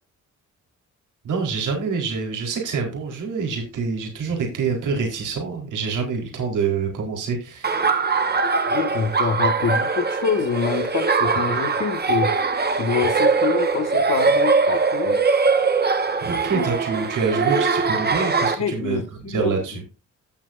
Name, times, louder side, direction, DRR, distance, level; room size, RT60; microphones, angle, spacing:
voice 1, 1.2-7.7 16.2-19.8, right 5 dB, 80° right, 4.1 m, -26 dB
Laughter, 7.6-18.5, right 4 dB, 30° right, 1.5 m, -21 dB
voice 2, 8.7-15.2 16.5-16.6 18.6-19.6, left 6 dB, 55° left, 1.7 m, -26 dB
15.5 x 7.6 x 2.6 m
cardioid pair, 90°, 31 cm